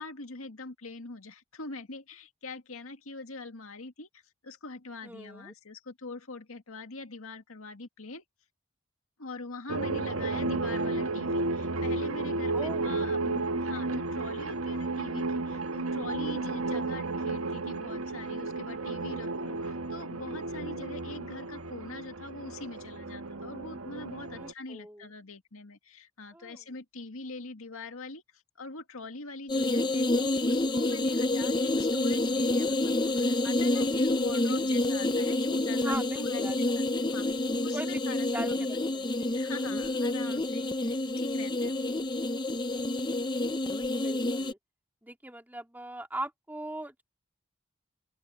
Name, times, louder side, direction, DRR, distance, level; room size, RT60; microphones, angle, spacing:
voice 1, 0.0-8.2 9.2-38.7 39.0-41.9, left 3 dB, 85° left, 2.1 m, -43 dB
voice 2, 5.0-5.5 12.5-12.9 24.4-25.1 26.3-26.6 35.7-36.6 37.7-38.8 39.2-39.5 44.0-44.6 45.0-47.0, right 1 dB, 10° right, 3.8 m, -40 dB
sound 1, 9.7-24.5, right 3 dB, 85° right, 1.4 m, -33 dB
sound 2, 29.5-44.5, left 2 dB, 20° left, 0.7 m, -28 dB
open air
head